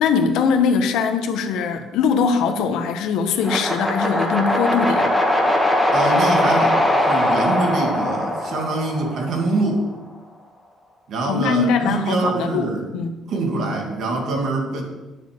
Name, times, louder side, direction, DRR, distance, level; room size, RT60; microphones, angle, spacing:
voice 1, 0.0-5.1 11.3-12.7 12.9-13.1, left 6 dB, 75° left, 6 dB, 1.3 m, -21 dB
sound 1, 3.4-9.6, left 1 dB, ahead, 1.6 m, -20 dB
voice 2, 5.9-9.8 11.1-12.8 13.3-14.8, right 2 dB, 50° right, 1 dB, 2.4 m, -24 dB
10.5 x 7.0 x 6.8 m, 1.1 s
cardioid pair, 170°, 0 cm